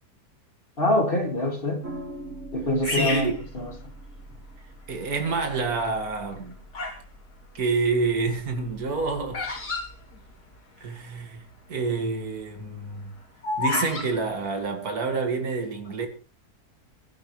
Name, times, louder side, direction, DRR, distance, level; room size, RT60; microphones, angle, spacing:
voice 1, 0.8-1.8 2.5-3.7, left 1 dB, 35° left, 2.5 m, -25 dB
sound 1, 1.8-10.4, right 1 dB, 55° right, 2.7 m, -44 dB
Bird vocalization bird call bird song, 2.8-4.3 5.0-5.4 6.2-7.1 7.4-10.8 11.1-11.2 11.4-11.7 12.2-14.1, left 3 dB, 85° left, 3.6 m, -31 dB
voice 2, 2.9-3.3 4.9-6.5 7.5-9.4 10.8-11.4 11.7-13.1 13.6-16.1, right 4 dB, 70° right, 2.7 m, -28 dB
23.0 x 11.5 x 3.2 m
omnidirectional pair, 1.6 m